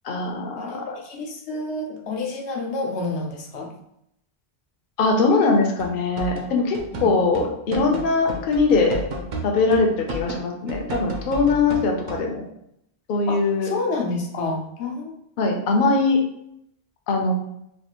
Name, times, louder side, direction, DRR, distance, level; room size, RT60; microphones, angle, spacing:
voice 1, 0.0-1.0 5.0-9.0 9.4-12.5 13.1-13.7 15.4-16.2 17.1-17.3, left 3 dB, 60° left, 2 dB, 0.7 m, -21 dB
voice 2, 0.6-3.7 6.9-7.3 13.3-15.1, left 2 dB, 85° left, 0 dB, 0.9 m, -29 dB
sound 1, 5.8-12.3, right 1 dB, 55° right, 0.6 m, -32 dB
3.2 x 2.4 x 2.9 m, 0.77 s
omnidirectional pair, 1.1 m